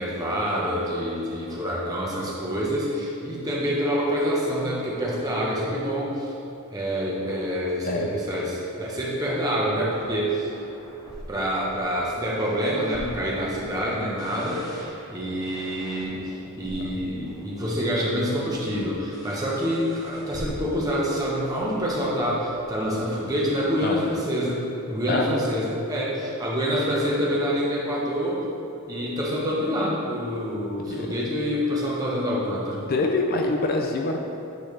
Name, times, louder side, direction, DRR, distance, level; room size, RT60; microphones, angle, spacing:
voice 1, 0.0-6.3 6.7-10.5 11.3-28.4 28.9-32.8, equal, 15° right, -5 dB, 0.9 m, -27 dB
voice 2, 7.8-8.2 23.8-24.1 25.1-25.3 30.9-31.1 32.9-34.2, left 3 dB, 45° left, 3 dB, 0.3 m, -25 dB
sound 1, 9.8-23.7, equal, 15° left, 0.7 m, -45 dB
8.3 x 4.4 x 3.2 m, 2.8 s
head